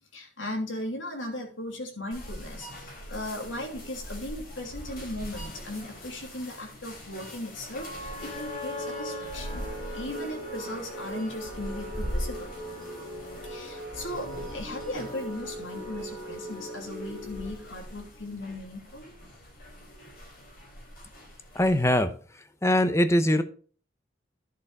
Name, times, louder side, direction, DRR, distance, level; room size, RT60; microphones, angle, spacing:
voice 1, 0.1-12.5 13.4-19.1, left 1 dB, 90° left, 1 dB, 2.9 m, -37 dB
sound 1, 2.1-22.0, equal, 50° left, 3.9 m, -42 dB
sound 2, 7.7-17.9, equal, 30° left, 3.4 m, -39 dB
voice 2, 21.5-22.1 22.6-23.4, left 1 dB, 15° left, 10 dB, 0.8 m, -22 dB
11.5 x 6.7 x 4.2 m, 0.41 s
head